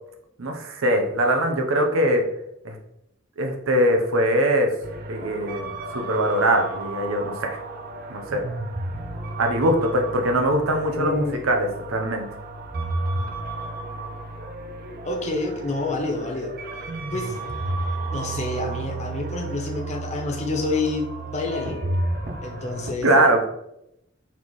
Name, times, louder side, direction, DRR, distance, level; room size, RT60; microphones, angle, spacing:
voice 1, 0.4-2.2 2.6-2.7 3.4-4.7 5.1-7.6 8.1-8.4 9.4-12.3 23.0-23.5, right 1 dB, 90° right, 4 dB, 0.7 m, -22 dB
sound 1, 4.8-22.9, right 2 dB, 50° right, 0.5 m, -32 dB
voice 2, 11.0-11.4 15.0-16.5 17.1-17.4 18.1-21.8 22.4-23.1, left 2 dB, 35° left, 2 dB, 0.7 m, -28 dB
4.1 x 3.5 x 3.0 m, 0.81 s
head